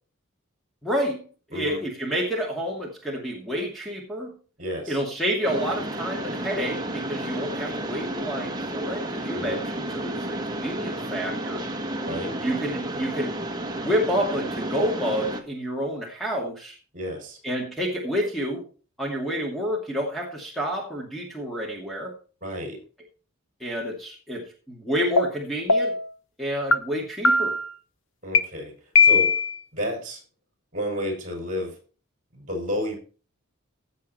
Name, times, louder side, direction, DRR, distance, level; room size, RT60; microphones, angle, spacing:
voice 1, 0.8-1.2 1.5-4.3 4.9-11.6 12.4-16.8 17.4-18.6 19.0-22.1 23.6-25.9 26.4-27.6, equal, ahead, -2 dB, 2.6 m, -29 dB
voice 2, 1.5-1.8 4.6-5.0 9.3-9.6 12.0-12.3 16.9-17.4 22.4-22.8 28.2-28.7 29.0-29.4 29.7-30.2 30.7-31.8 32.3-32.9, left 1 dB, 40° right, 3 dB, 6.2 m, -31 dB
Mechanisms, 5.4-15.4, right 1 dB, 20° right, 1.6 m, -32 dB
sound 1, 25.2-25.3 25.7-26.1 26.7-26.8 27.2-27.7 28.3-28.4 28.9-29.6, left 4 dB, 65° left, 1.0 m, -18 dB
16.0 x 7.6 x 4.4 m, 0.38 s
head